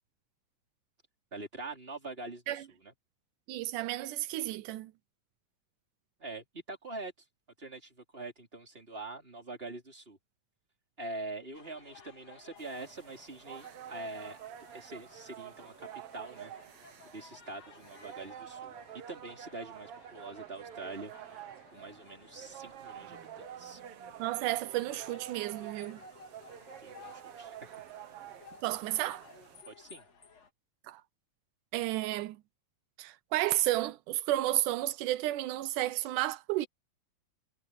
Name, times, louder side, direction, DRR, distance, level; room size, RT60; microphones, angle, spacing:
voice 1, 1.3-2.9 6.2-7.1 7.6-10.2 11.0-14.4 14.7-15.9 16.1-16.6 17.1-21.1 21.7-23.8 26.8-27.8 29.7-30.1, right 2 dB, 15° right, 4.6 m, -44 dB
voice 2, 3.5-4.9 24.2-26.0 28.6-29.3 30.9-31.0 31.7-32.4 33.0-36.7, right 15 dB, 85° right, 2.3 m, -32 dB
sound 1, 11.5-30.5, left 4 dB, 55° left, 4.3 m, -57 dB
sound 2, 12.6-29.6, right 10 dB, 60° right, 1.6 m, -49 dB
omnidirectional pair, 3.5 m